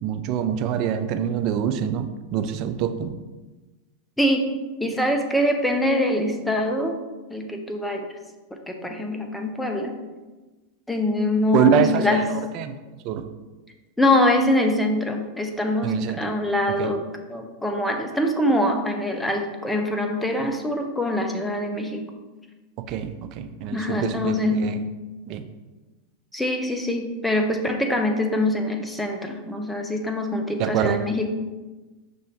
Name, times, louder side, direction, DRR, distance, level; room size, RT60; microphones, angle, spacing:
voice 1, 0.0-3.2 11.5-12.7 13.0-13.2 15.8-16.3 16.8-16.9 22.8-24.8 25.3-25.4 30.6-31.0, right 8 dB, 50° right, 9 dB, 0.4 m, -25 dB
voice 2, 4.2-4.5 4.8-6.9 7.3-8.1 8.7-10.0 10.9-12.2 14.0-22.0 23.7-24.7 26.3-31.3, left 1 dB, 5° left, 3 dB, 0.6 m, -24 dB
5.4 x 2.6 x 3.5 m, 1.2 s
hypercardioid pair, 105°, 0 cm